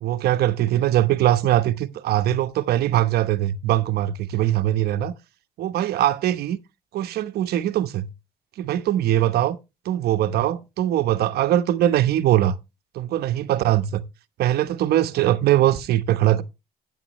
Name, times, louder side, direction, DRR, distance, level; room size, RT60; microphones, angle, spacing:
voice 1, 0.0-5.1 5.6-6.6 6.9-8.1 8.6-9.6 9.8-12.5 12.9-14.0 14.4-16.4, right 13 dB, 70° right, 0.9 m, -21 dB
12.5 x 9.1 x 3.0 m
cardioid pair, 110°, 17 cm